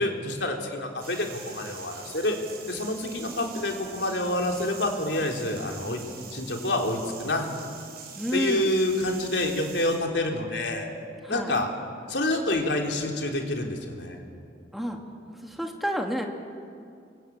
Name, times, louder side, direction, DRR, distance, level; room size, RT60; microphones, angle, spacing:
voice 1, 0.0-2.4 2.7-6.0 6.3-7.4 8.3-10.9 11.3-11.7 12.1-14.2, left 1 dB, 70° left, 2 dB, 3.7 m, -27 dB
sound 1, 1.0-10.0, right 6 dB, 55° right, 6.5 m, -44 dB
voice 2, 8.2-8.7 11.2-11.5 14.7-15.0 15.3-16.2, equal, ahead, 2 dB, 2.3 m, -30 dB
28.0 x 23.5 x 8.8 m, 2.4 s
head